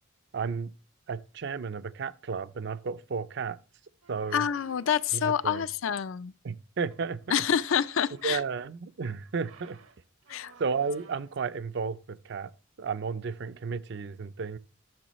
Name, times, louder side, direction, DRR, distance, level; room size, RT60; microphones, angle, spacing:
voice 1, 0.3-0.7 1.1-3.6 4.1-4.5 5.1-5.7 6.4-7.2 8.2-9.8 10.6-12.5 12.8-14.6, right 5 dB, 55° right, 0.4 m, -33 dB
sound 1, 4.0-5.9 6.8-8.6 9.2-11.5, right 4 dB, 70° right, 0.9 m, -55 dB
voice 2, 4.3-6.3 7.3-8.4 10.3-10.5, left 8 dB, 70° left, 0.4 m, -27 dB
12.0 x 6.9 x 3.0 m
head